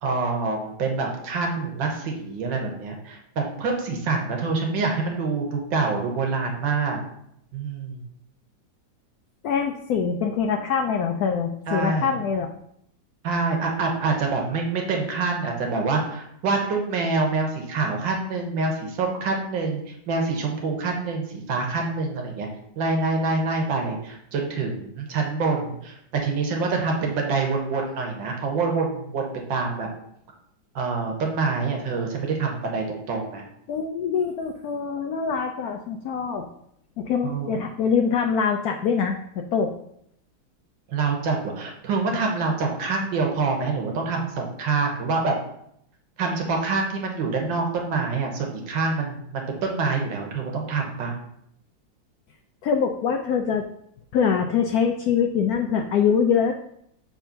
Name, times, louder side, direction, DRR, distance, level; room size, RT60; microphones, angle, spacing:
voice 1, 0.0-7.0 7.5-8.0 11.7-12.1 13.2-22.5 22.8-29.9 30.8-33.4 37.2-37.6 40.9-45.3 46.2-51.1, right 4 dB, 75° right, 1 dB, 1.9 m, -26 dB
voice 2, 9.4-12.5 33.7-36.5 37.0-39.7 52.6-53.6 54.1-56.5, left 6 dB, 75° left, 4 dB, 0.8 m, -24 dB
7.2 x 3.5 x 5.6 m, 0.74 s
omnidirectional pair, 2.1 m